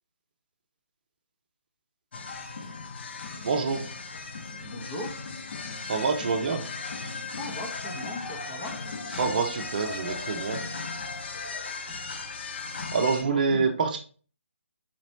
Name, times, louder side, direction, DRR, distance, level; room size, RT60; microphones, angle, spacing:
sound 1, 2.1-13.2, left 4 dB, 50° left, 0.6 m, -37 dB
voice 1, 3.4-3.9 5.8-6.6 9.2-10.6 12.9-14.0, right 4 dB, 40° right, 4 dB, 0.6 m, -26 dB
voice 2, 4.6-5.2 6.5-6.7 7.4-8.8 11.9-12.0 13.2-13.7, left 1 dB, 25° left, 1 dB, 0.9 m, -39 dB
4.3 x 3.0 x 2.8 m, 0.39 s
figure-of-eight pair, 145°, 7 cm